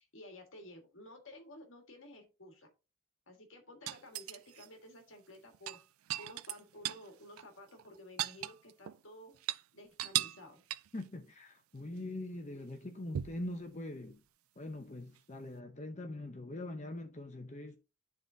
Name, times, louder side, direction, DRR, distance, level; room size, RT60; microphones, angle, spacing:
voice 1, 0.0-2.7 3.3-5.8 6.2-9.3 9.7-10.6, left 1 dB, 70° left, 1.7 m, -53 dB
sound 1, 3.9-4.7 5.5-7.1 7.4-7.5 7.8-9.0 9.3-9.6 10.0-10.4 10.7-11.0 13.1-13.5 15.2-15.3, right 13 dB, 90° right, 0.3 m, -37 dB
voice 2, 10.9-14.2 14.6-17.8, left 1 dB, 35° left, 0.7 m, -43 dB
11.5 x 3.9 x 2.7 m
head